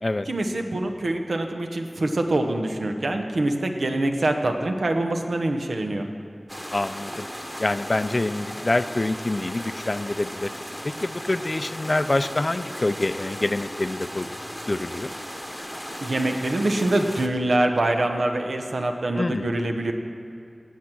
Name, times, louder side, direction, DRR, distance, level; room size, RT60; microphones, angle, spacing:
voice 1, 0.3-6.1 16.0-19.9, right 1 dB, 90° right, 4 dB, 1.0 m, -24 dB
sound 1, 6.5-17.3, equal, ahead, 1.0 m, -36 dB
voice 2, 6.7-7.3 7.6-10.5 10.8-14.3 14.7-15.1 19.1-19.5, left 2 dB, 45° left, 13 dB, 0.4 m, -26 dB
16.5 x 7.3 x 6.1 m, 2.5 s
wide cardioid pair, 55°, 0 cm